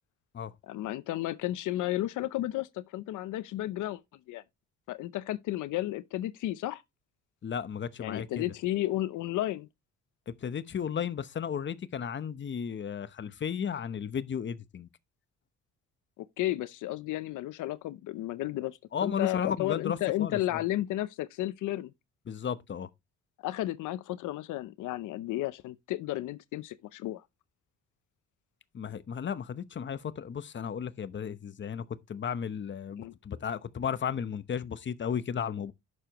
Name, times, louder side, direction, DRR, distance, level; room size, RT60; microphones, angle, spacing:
voice 1, 0.6-4.0 4.3-4.4 4.9-6.8 8.0-9.7 16.4-21.9 23.4-27.2 33.0-33.1, left 15 dB, 85° left, 0.7 m, -33 dB
voice 2, 7.4-8.4 10.3-14.9 18.9-20.6 22.3-22.9 28.7-31.8 32.1-35.7, left 7 dB, 40° left, 0.9 m, -34 dB
11.0 x 6.9 x 3.0 m
cardioid pair, 90°, 30 cm